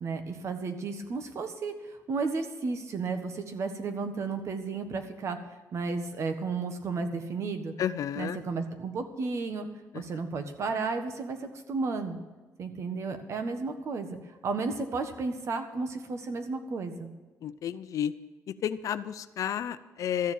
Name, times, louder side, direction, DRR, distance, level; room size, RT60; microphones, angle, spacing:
voice 1, 0.0-5.4 5.7-7.7 8.2-9.7 9.9-12.2 12.6-17.1, right 4 dB, 50° right, 8 dB, 1.5 m, -33 dB
voice 2, 7.8-8.4 17.4-18.1 18.5-20.3, left 9 dB, 65° left, 13 dB, 0.6 m, -31 dB
13.5 x 7.4 x 9.0 m, 1.2 s
cardioid pair, 130°, 6 cm